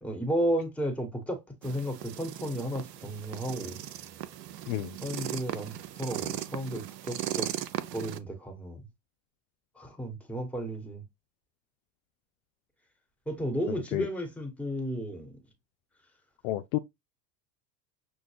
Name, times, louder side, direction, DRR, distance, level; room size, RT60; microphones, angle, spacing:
voice 1, 0.0-3.8 5.0-7.5 7.9-8.9 9.8-11.0 13.3-15.3, equal, 5° left, 1.4 m, -33 dB
sound 1, 1.6-8.2, right 12 dB, 75° right, 0.6 m, -38 dB
voice 2, 16.4-16.8, left 15 dB, 50° left, 0.5 m, -30 dB
6.1 x 2.2 x 3.3 m
figure-of-eight pair, 70°, 50 cm